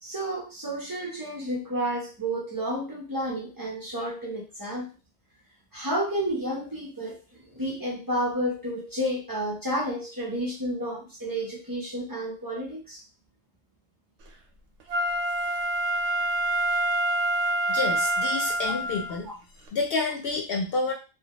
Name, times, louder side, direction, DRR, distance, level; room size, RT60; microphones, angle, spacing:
voice 1, 0.0-4.9 5.7-13.0 19.2-19.3, right 1 dB, 30° right, -3 dB, 0.4 m, -31 dB
Wind instrument woodwind instrument, 14.9-19.2 19.7-19.8, right 1 dB, 85° right, 0.9 m, -26 dB
voice 2, 17.7-19.3 19.7-20.9, left 3 dB, 65° left, 1 dB, 0.7 m, -28 dB
2.2 x 2.1 x 2.8 m, 0.32 s
omnidirectional pair, 1.2 m